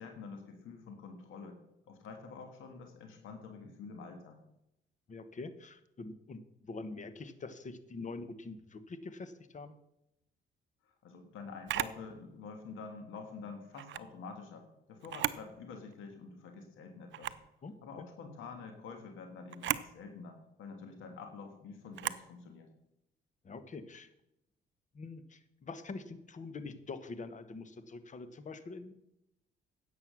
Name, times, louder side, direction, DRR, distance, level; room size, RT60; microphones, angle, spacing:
voice 1, 0.0-1.6 1.9-4.4 10.8-17.3 17.8-22.7, left 4 dB, 85° left, 4 dB, 1.7 m, -47 dB
voice 2, 5.1-9.8 17.6-18.1 23.4-24.1 24.9-29.1, left 3 dB, 40° left, 11 dB, 1.2 m, -45 dB
Camera, 11.7-12.0 13.7-14.1 15.0-15.5 15.9-16.0 17.1-17.5 19.5-19.9 21.9-22.3, right 12 dB, 70° right, 0.6 m, -35 dB
10.5 x 7.7 x 6.2 m, 0.84 s
cardioid pair, 90°, 20 cm